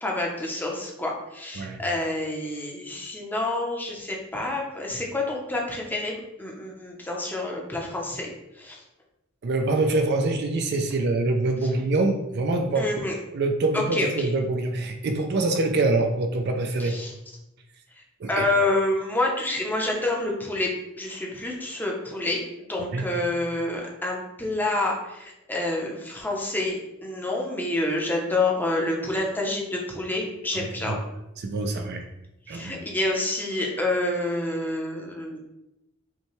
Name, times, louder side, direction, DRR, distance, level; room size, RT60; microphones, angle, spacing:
voice 1, 0.0-8.3 8.5-8.8 12.8-13.1 13.7-14.3 16.8-17.1 18.0-20.7 21.0-22.4 22.7-31.0 32.5-35.4, left 2 dB, 10° left, -2 dB, 0.7 m, -28 dB
voice 2, 9.4-12.9 13.3-16.9 18.2-18.4 22.9-23.1 30.5-31.0 31.4-32.1 32.5-32.8, right 2 dB, 55° right, 5 dB, 0.4 m, -25 dB
5.5 x 2.2 x 3.0 m, 0.90 s
head